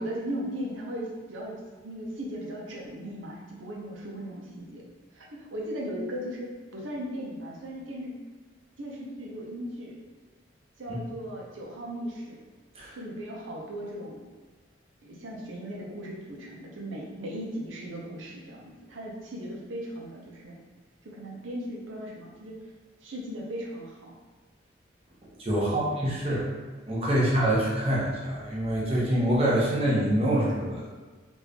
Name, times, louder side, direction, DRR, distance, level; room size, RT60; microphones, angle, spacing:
voice 1, 0.0-1.5 1.8-4.8 5.1-8.2 8.8-10.0 10.8-12.4 12.9-14.2 15.0-20.6 21.0-22.6 23.0-24.2 25.6-25.9 27.1-27.3 30.6-30.8, equal, 90° right, -3 dB, 0.8 m, -37 dB
voice 2, 25.4-26.5 26.9-30.6, right 1 dB, 30° right, -6 dB, 0.9 m, -25 dB
3.0 x 2.6 x 3.4 m, 1.4 s
head